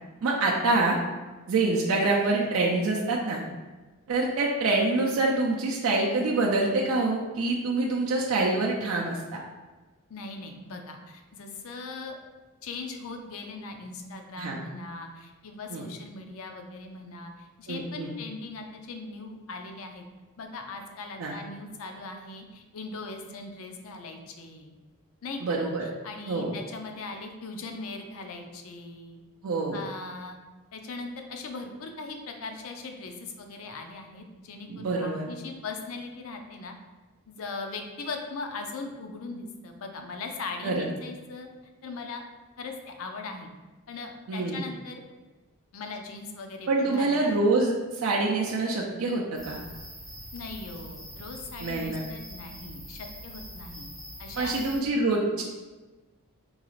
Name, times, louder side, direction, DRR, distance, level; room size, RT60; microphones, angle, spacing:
voice 1, 0.2-1.0 1.5-3.4 4.1-9.4 14.4-14.6 15.7-15.9 17.7-18.1 21.2-21.3 25.4-25.8 26.3-26.5 29.4-29.8 34.7-35.3 40.6-40.9 44.3-44.7 46.7-49.6 51.6-52.0 54.4-55.4, right 2 dB, 65° right, -2 dB, 0.4 m, -26 dB
voice 2, 10.1-12.2 12.6-20.0 20.4-24.7 25.2-29.2 29.7-30.4 30.7-36.7 37.3-41.5 41.8-42.2 42.6-43.5 43.9-45.0 45.7-47.3 50.3-53.9 54.2-54.5, left 3 dB, 65° left, 4 dB, 0.5 m, -39 dB
sound 1, 49.4-54.8, equal, ahead, 0.8 m, -43 dB
3.8 x 2.4 x 3.1 m, 1.2 s
head